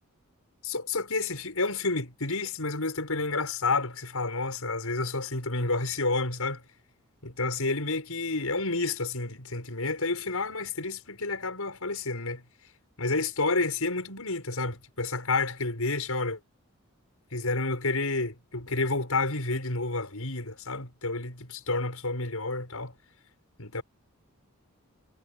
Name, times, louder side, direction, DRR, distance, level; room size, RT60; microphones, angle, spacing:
voice 1, 0.6-6.6 7.2-12.4 13.0-16.4 17.3-22.9 23.6-23.8, left 3 dB, 85° left, 6.3 m, -30 dB
head